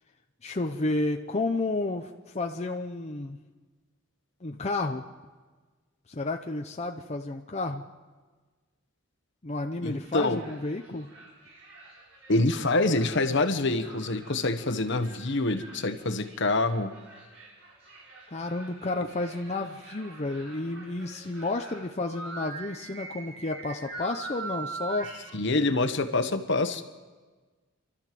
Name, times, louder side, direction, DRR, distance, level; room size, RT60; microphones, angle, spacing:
voice 1, 0.4-3.4 4.4-5.0 6.1-7.8 9.4-11.1 18.3-25.2 25.5-25.6, left 2 dB, 30° left, 4 dB, 0.7 m, -31 dB
voice 2, 9.8-10.4 12.3-16.9 25.3-26.8, left 2 dB, 60° left, 9 dB, 1.2 m, -26 dB
sound 1, 9.8-25.3, right 3 dB, 75° right, 6.2 m, -44 dB
29.5 x 12.5 x 7.7 m, 1.4 s
head